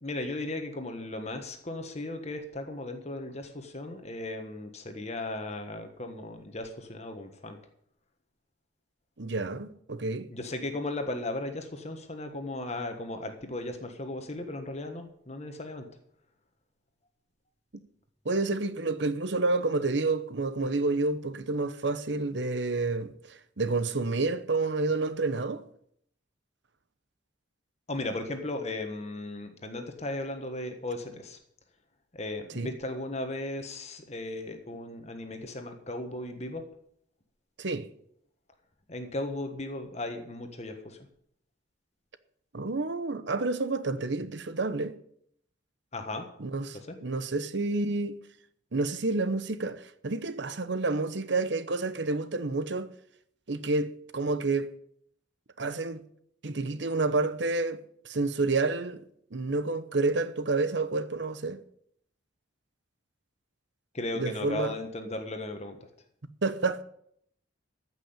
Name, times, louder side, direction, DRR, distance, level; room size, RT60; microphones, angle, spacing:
voice 1, 0.0-7.6 10.3-15.9 27.9-31.4 32.1-36.6 38.9-41.0 45.9-46.3 46.9-47.0 63.9-65.8, left 2 dB, 35° left, 1.4 m, -36 dB
voice 2, 9.2-10.3 18.2-25.6 32.5-32.7 37.6-37.9 42.5-45.0 46.4-48.2 48.7-52.9 53.5-54.7 55.6-56.0 56.4-59.0 59.3-61.6 64.2-64.7 66.4-66.8, right 3 dB, 65° right, 0.9 m, -29 dB
14.5 x 6.1 x 8.8 m
head